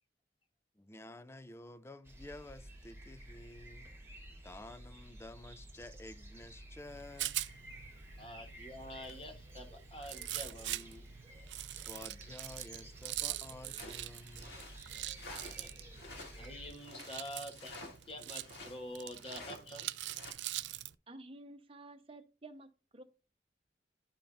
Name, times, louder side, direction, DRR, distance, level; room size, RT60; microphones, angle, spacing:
voice 1, 0.8-3.9 4.4-7.4 11.7-14.5, left 1 dB, 15° left, 0.4 m, -51 dB
sound 1, 2.0-16.7, right 1 dB, 15° right, 1.3 m, -52 dB
Rattle, 6.8-20.9, right 15 dB, 80° right, 0.4 m, -44 dB
voice 2, 8.2-11.0 15.6-15.7 16.4-17.8 18.0-19.9, left 1 dB, 30° left, 1.1 m, -47 dB
sound 2, 13.8-15.6 15.9-18.8 19.2-19.6 20.0-20.3, left 2 dB, 65° left, 1.9 m, -50 dB
voice 3, 21.1-23.0, right 2 dB, 30° right, 0.8 m, -52 dB
11.5 x 5.1 x 2.5 m
head